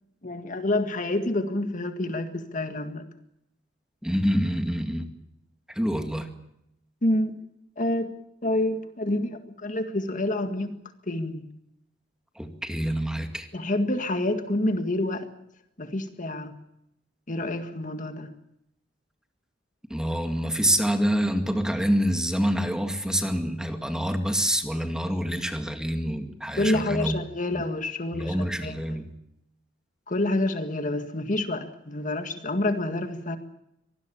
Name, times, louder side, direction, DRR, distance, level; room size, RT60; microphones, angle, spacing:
voice 1, 0.2-3.1 7.0-7.3 7.8-8.1 8.4-10.8 11.1-11.5 13.5-15.3 15.8-16.5 17.3-18.3 26.6-29.0 30.1-33.4, left 1 dB, 45° left, 7 dB, 1.9 m, -28 dB
voice 2, 4.0-5.1 5.7-6.3 12.4-13.5 19.9-27.2 27.5-27.7 28.1-29.1, equal, 5° right, 6 dB, 2.3 m, -26 dB
24.5 x 19.5 x 7.2 m, 0.81 s
head